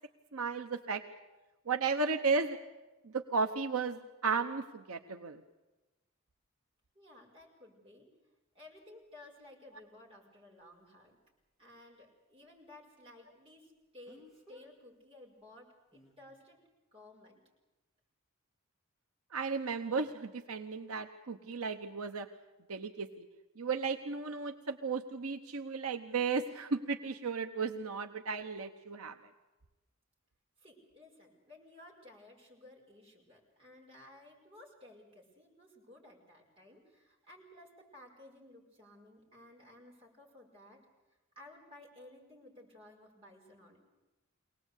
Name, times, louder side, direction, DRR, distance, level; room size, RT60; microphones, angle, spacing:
voice 1, 0.3-1.0 1.7-2.6 3.0-5.4 19.3-22.3 22.7-23.3 23.6-29.2, right 4 dB, 80° right, 6 dB, 1.0 m, -34 dB
voice 2, 6.9-8.1 8.5-11.2 11.6-16.6 16.9-17.4 30.6-40.8 41.4-43.8, left 1 dB, 25° right, -3 dB, 5.4 m, -56 dB
Speech, 8.7-8.8 14.0-14.7 15.9-16.2, left 1 dB, ahead, 3.6 m, -58 dB
23.0 x 18.5 x 8.2 m, 1.1 s
head